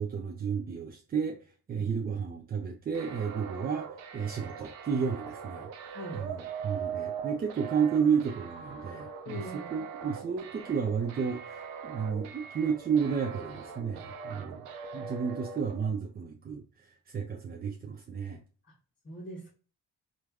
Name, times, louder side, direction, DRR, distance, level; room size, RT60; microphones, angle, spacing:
voice 1, 0.0-1.4 1.7-3.9 4.1-5.7 6.1-11.6 11.8-14.6 14.9-16.6 17.1-18.4, right 6 dB, 25° right, 4 dB, 0.3 m, -32 dB
sound 1, 2.9-15.9, right 7 dB, 85° right, 0.5 m, -41 dB
voice 2, 9.3-9.7 14.9-15.0 19.0-19.5, left 1 dB, 25° left, -4 dB, 0.8 m, -41 dB
3.1 x 2.3 x 2.3 m, 0.39 s
hypercardioid pair, 50°, 46 cm